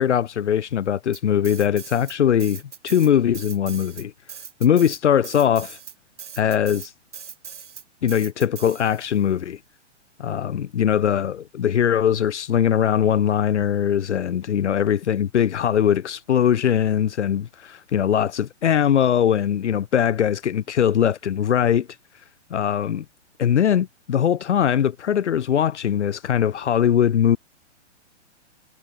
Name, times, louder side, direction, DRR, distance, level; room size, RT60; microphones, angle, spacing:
voice 1, 0.0-4.1 4.6-5.8 6.4-6.9 8.0-9.6 10.2-21.9 22.5-23.0 23.4-27.4, left 9 dB, 75° left, 1.5 m, -21 dB
sound 1, 1.1-2.1 2.4-9.2, right 7 dB, 75° right, 6.1 m, -40 dB
hypercardioid pair, 130°, 35 cm